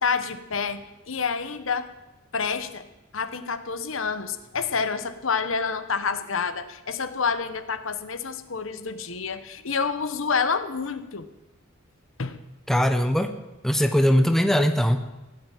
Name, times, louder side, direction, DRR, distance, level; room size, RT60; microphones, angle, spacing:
voice 1, 0.0-1.9 2.3-2.8 3.1-11.3 12.2-12.4, left 5 dB, 75° left, 11 dB, 1.1 m, -28 dB
voice 2, 12.7-13.3 13.6-15.0, equal, ahead, 7 dB, 0.9 m, -20 dB
16.5 x 9.2 x 9.1 m, 1.0 s
head